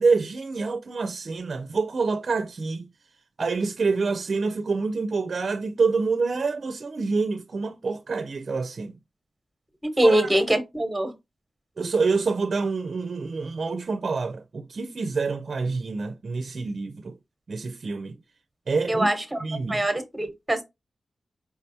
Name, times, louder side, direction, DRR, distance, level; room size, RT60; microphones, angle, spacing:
voice 1, 0.0-2.9 3.4-8.9 10.0-10.3 11.8-17.2 17.5-18.2 18.7-19.1 19.4-19.9, right 4 dB, 50° right, 0.4 m, -27 dB
voice 2, 9.8-11.1 18.9-19.2 19.7-20.6, right 1 dB, 10° right, 1.0 m, -22 dB
4.7 x 3.3 x 2.7 m
wide cardioid pair, 110°, 0 cm